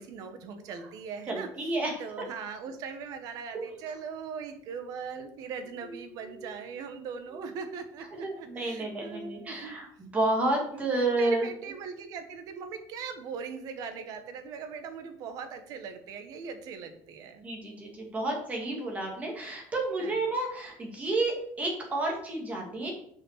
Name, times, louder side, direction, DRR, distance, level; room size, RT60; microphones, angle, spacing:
voice 1, 0.0-9.7 10.7-17.5 20.0-20.2, right 6 dB, 55° right, 7 dB, 1.5 m, -40 dB
voice 2, 1.3-2.2 3.5-3.8 6.2-6.5 7.3-7.4 8.2-11.4 17.4-22.9, right 2 dB, 20° right, 0 dB, 2.4 m, -31 dB
6.5 x 5.8 x 6.7 m, 0.65 s
cardioid pair, 160°, 7 cm